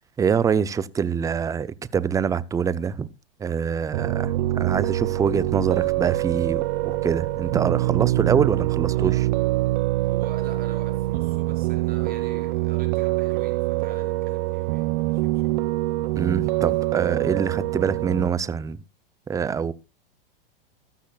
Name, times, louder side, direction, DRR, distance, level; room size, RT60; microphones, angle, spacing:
voice 1, 0.2-3.1 3.4-9.3 16.2-18.8 19.3-19.7, right 6 dB, 10° right, 0.5 m, -25 dB
Piano, 3.9-18.3, right 17 dB, 55° right, 0.6 m, -24 dB
voice 2, 8.9-9.2 10.0-15.5, right 6 dB, 30° right, 4.7 m, -45 dB
14.5 x 12.5 x 2.3 m
hypercardioid pair, 115°, 29 cm